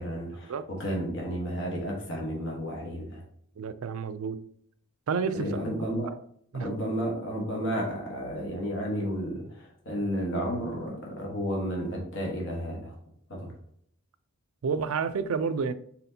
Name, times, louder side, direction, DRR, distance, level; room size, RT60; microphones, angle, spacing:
voice 1, 0.0-3.2 5.3-6.1 6.5-12.9 13.3-13.5, equal, 60° left, 1.2 m, -32 dB
voice 2, 3.6-4.4 5.1-5.6 6.5-6.7 14.6-15.7, right 5 dB, 80° right, 0.4 m, -29 dB
4.2 x 4.1 x 2.7 m
head